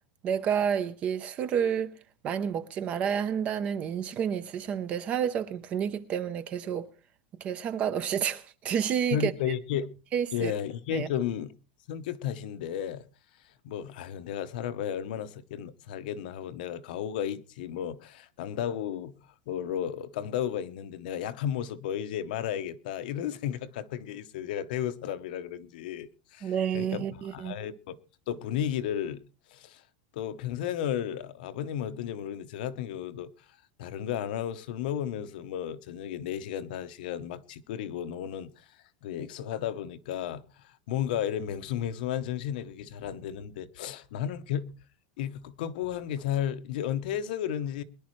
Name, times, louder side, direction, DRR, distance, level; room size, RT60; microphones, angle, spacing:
voice 1, 0.2-1.9 2.2-6.9 7.4-9.3 10.1-10.5 10.9-11.1 26.4-27.5, right 8 dB, 25° right, 0.6 m, -29 dB
voice 2, 9.1-9.9 10.3-11.5 11.9-13.0 13.6-19.1 19.5-28.0 28.3-29.2 29.5-29.8 30.1-33.3 33.8-44.7 45.2-47.8, left 10 dB, 60° left, 0.9 m, -33 dB
23.0 x 11.0 x 3.1 m
supercardioid pair, 180°, 5 cm